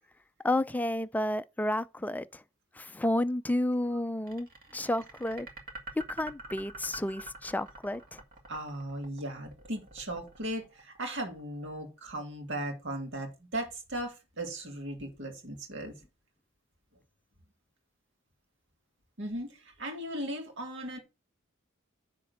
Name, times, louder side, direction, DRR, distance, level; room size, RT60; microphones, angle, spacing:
voice 1, 0.4-2.4 2.8-4.5 4.7-5.5 6.1-8.2, left 1 dB, 10° left, 0.3 m, -31 dB
sound 1, 4.3-11.4, right 2 dB, 45° right, 1.9 m, -46 dB
voice 2, 8.5-15.9 19.2-21.0, right 1 dB, 60° right, 2.3 m, -37 dB
9.7 x 3.8 x 6.5 m
head